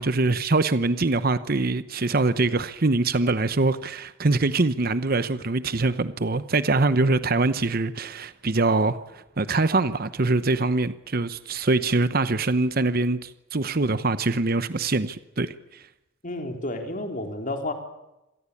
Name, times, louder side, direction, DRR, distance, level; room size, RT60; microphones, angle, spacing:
voice 1, 0.0-15.8, right 3 dB, 45° right, 0.9 m, -24 dB
voice 2, 16.2-17.7, left 1 dB, 40° left, 3.7 m, -31 dB
26.5 x 18.5 x 8.6 m
head